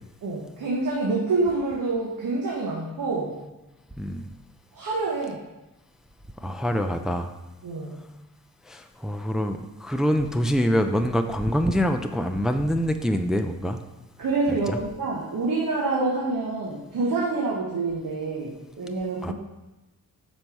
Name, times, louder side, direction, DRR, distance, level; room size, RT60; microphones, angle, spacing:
voice 1, 0.2-3.3 4.7-5.4 7.6-8.0 14.2-19.3, right 3 dB, 65° right, -3 dB, 1.2 m, -27 dB
voice 2, 4.0-4.3 6.4-7.3 8.7-13.8 14.7-14.8 19.2-19.3, equal, ahead, 5 dB, 0.4 m, -25 dB
5.4 x 4.4 x 6.1 m, 1.0 s
cardioid pair, 90°, 34 cm